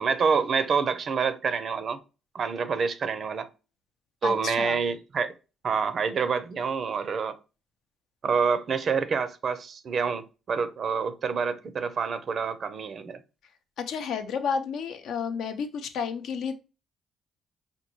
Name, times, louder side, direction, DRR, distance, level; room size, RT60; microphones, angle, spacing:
voice 1, 0.0-2.0 2.3-3.5 4.2-5.3 5.6-7.4 8.2-13.2, right 5 dB, 55° right, 0.5 m, -27 dB
voice 2, 4.2-4.8 13.8-16.6, left 6 dB, 80° left, 0.5 m, -31 dB
5.1 x 2.2 x 3.0 m
cardioid pair, 90°, 0 cm